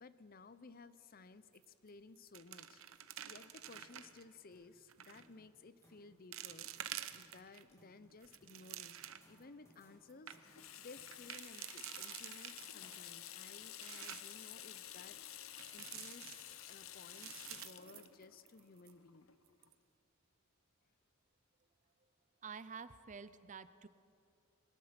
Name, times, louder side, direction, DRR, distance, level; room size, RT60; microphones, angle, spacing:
voice 1, 0.0-2.8 3.2-6.7 7.1-9.0 9.3-10.4 10.8-15.2 15.7-19.3, left 3 dB, 45° left, 14 dB, 0.7 m, -57 dB
sound 1, 1.6-1.9 2.2-4.2 4.9-5.3 5.8-5.9 6.3-7.6 8.1-9.4 9.8-9.9 10.1-10.4 11.1-13.0 13.5-14.4 15.6-16.7 17.1-18.6 18.9-19.0 19.5-19.7, right 11 dB, 75° right, 0.9 m, -49 dB
sound 2, 3.7-13.6, equal, 15° left, 3.2 m, -70 dB
Water tap faucet / Sink (filling or washing), 10.4-19.7, left 11 dB, 75° left, 0.9 m, -52 dB
voice 2, 22.4-23.9, right 6 dB, 35° right, 14 dB, 0.6 m, -49 dB
21.5 x 20.0 x 5.9 m, 2.5 s
head